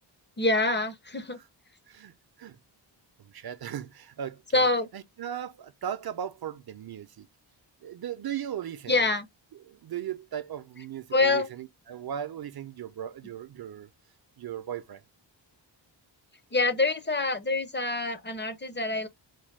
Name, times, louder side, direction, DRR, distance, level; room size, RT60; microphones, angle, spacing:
voice 1, 0.4-1.4 4.5-4.9 8.9-9.3 11.1-11.5 16.5-19.1, left 2 dB, 25° left, 0.5 m, -25 dB
voice 2, 1.9-2.6 3.2-4.7 4.9-7.3 7.8-9.1 9.6-13.9 14.4-15.0, right 9 dB, 55° right, 0.5 m, -37 dB
4.3 x 2.1 x 3.1 m
wide cardioid pair, 130°, 44 cm